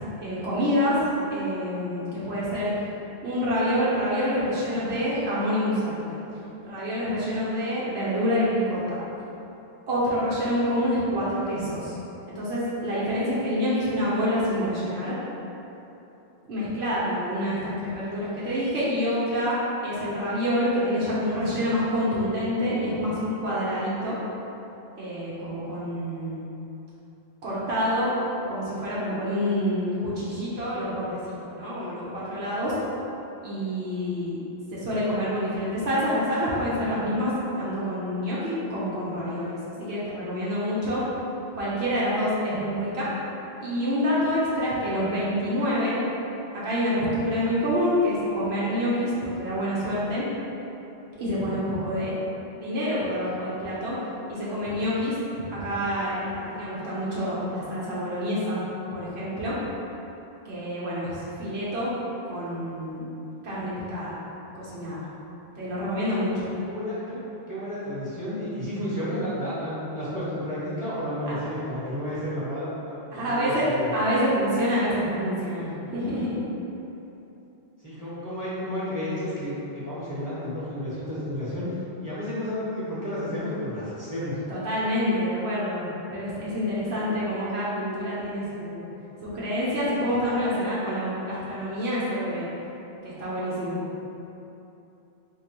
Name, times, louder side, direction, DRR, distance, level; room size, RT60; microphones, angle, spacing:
voice 1, 0.2-1.0 1.3-2.7 3.2-6.2 6.7-9.0 9.9-11.9 12.3-15.1 16.4-24.2 25.0-26.4 27.4-28.1 28.4-32.7 33.4-34.4 34.7-41.0 41.5-43.1 43.6-45.9 46.5-50.2 51.2-52.1 52.5-54.0 54.3-55.1 55.5-58.6 58.9-59.6 60.4-61.9 62.3-63.1 63.4-64.1 64.5-65.1 65.6-66.5 71.3-71.4 73.1-76.4 84.5-85.8 86.1-88.9 89.2-92.5 93.0-93.8, equal, 85° right, -9 dB, 1.0 m, -27 dB
voice 2, 66.7-67.2 67.5-73.9 77.8-81.7 82.0-84.4, equal, 20° right, -11 dB, 0.9 m, -31 dB
3.7 x 2.9 x 2.9 m, 3.0 s
omnidirectional pair, 1.1 m